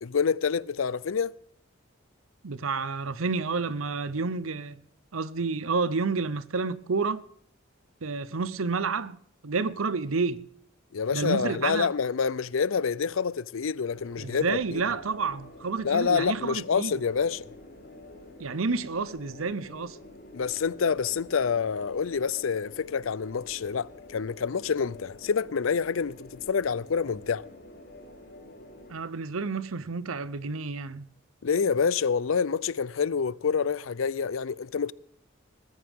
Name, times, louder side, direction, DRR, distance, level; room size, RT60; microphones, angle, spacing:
voice 1, 0.0-1.3 10.9-14.8 15.8-17.5 20.3-27.4 31.4-34.9, left 6 dB, 80° left, 0.5 m, -27 dB
voice 2, 2.4-4.8 5.1-7.2 8.0-9.2 9.4-10.5 11.1-11.9 14.2-16.9 18.4-20.0 28.9-31.1, right 4 dB, 85° right, 0.8 m, -30 dB
sound 1, 13.9-28.9, left 2 dB, 50° left, 5.2 m, -48 dB
21.0 x 14.0 x 3.6 m
head